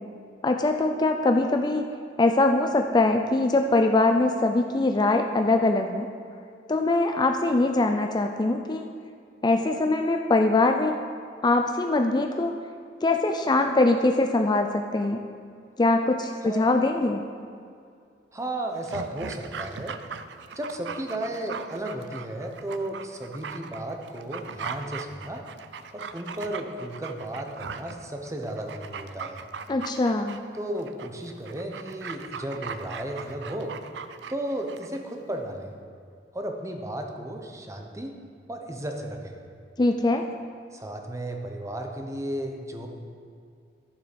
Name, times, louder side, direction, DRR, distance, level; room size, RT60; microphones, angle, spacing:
voice 1, 0.4-1.8 2.2-6.1 6.7-8.9 9.4-11.0 11.4-12.5 13.0-15.2 15.8-17.2 29.7-30.4 39.8-40.2, left 2 dB, 25° left, 5 dB, 0.4 m, -22 dB
voice 2, 16.4-16.8 18.3-19.9 20.5-25.4 25.9-29.4 30.5-33.7 34.3-35.7 36.3-38.1 38.5-39.4 40.7-42.9, right 1 dB, 20° right, 3 dB, 0.9 m, -34 dB
Dog, 18.7-35.0 35.3-35.4, right 6 dB, 80° right, 0.5 m, -39 dB
12.0 x 7.2 x 5.2 m, 2.3 s
head